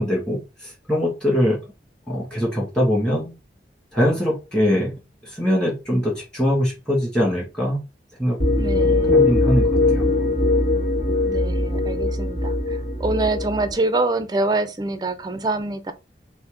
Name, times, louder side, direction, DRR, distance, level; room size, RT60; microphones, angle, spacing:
voice 1, 0.0-1.6 2.1-3.3 3.9-4.9 5.3-7.8 8.2-8.4 9.1-9.7 10.0-10.1, equal, 5° left, 1.9 m, -22 dB
sound 1, 8.4-13.7, left 2 dB, 45° left, 1.5 m, -20 dB
voice 2, 8.6-9.2 11.2-15.9, right 2 dB, 20° right, 0.4 m, -25 dB
6.0 x 2.1 x 3.7 m
head